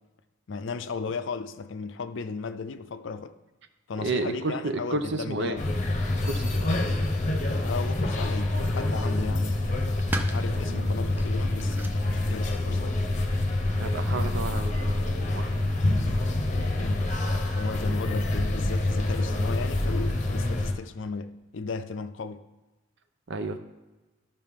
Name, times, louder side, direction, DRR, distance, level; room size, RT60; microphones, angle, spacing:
voice 1, 0.5-3.4 3.9-5.6 7.6-9.8 10.3-12.9 16.7-17.1 17.5-22.4, left 4 dB, 60° left, 0.5 m, -35 dB
voice 2, 4.0-5.6 6.3-6.7 10.7-10.9 13.8-15.1 15.3-15.5 23.3-23.6, right 2 dB, 60° right, 0.7 m, -31 dB
sound 1, 5.6-20.7, left 2 dB, 35° left, 0.8 m, -26 dB
sound 2, 7.4-12.8, right 1 dB, 10° right, 0.5 m, -40 dB
13.0 x 5.5 x 3.6 m
head